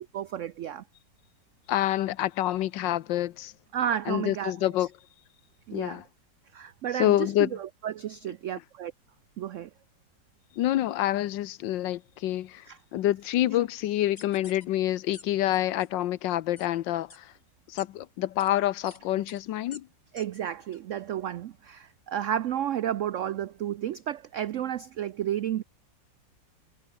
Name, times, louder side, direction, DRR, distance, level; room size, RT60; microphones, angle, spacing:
voice 1, 0.1-0.8 3.7-4.5 5.7-6.0 6.5-8.9 9.4-9.7 12.7-12.8 20.1-25.6, right 10 dB, 85° right, 0.6 m, -32 dB
voice 2, 1.7-3.5 4.1-4.9 5.7-6.1 6.9-7.6 10.6-12.7 12.9-17.3 17.7-19.9, left 13 dB, 80° left, 1.5 m, -27 dB
sound 1, 14.2-14.6 15.1-15.2 15.5-15.9 16.6-16.7 17.1-17.2 17.8-17.9 18.4-18.5 18.8-19.0 19.3-19.4 19.7-19.8 20.2-20.3 20.7-20.8, left 3 dB, 50° left, 3.8 m, -47 dB
omnidirectional pair, 2.0 m